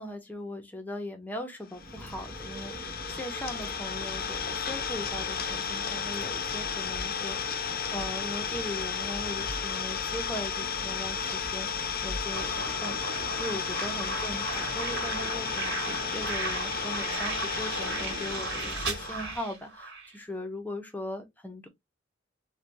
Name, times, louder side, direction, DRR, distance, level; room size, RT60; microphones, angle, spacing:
voice 1, 0.0-7.6 7.9-21.7, left 1 dB, 10° left, 0.7 m, -39 dB
Idling, 1.7-19.5, left 7 dB, 50° left, 0.5 m, -33 dB
sound 1, 1.7-19.4, right 1 dB, 40° right, 0.8 m, -45 dB
sound 2, 12.3-20.1, right 3 dB, 65° right, 1.3 m, -35 dB
3.3 x 2.2 x 2.6 m
head